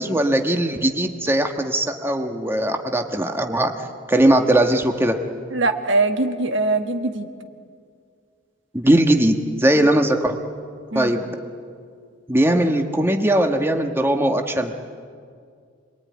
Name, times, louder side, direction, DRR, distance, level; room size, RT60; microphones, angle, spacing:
voice 1, 0.0-3.7 4.1-5.2 8.7-10.4 10.9-11.3 12.3-14.7, right 1 dB, 10° right, 4 dB, 1.4 m, -19 dB
voice 2, 5.5-7.3 10.9-11.1, right 2 dB, 65° right, 6 dB, 1.6 m, -22 dB
27.0 x 22.0 x 9.5 m, 2.2 s
head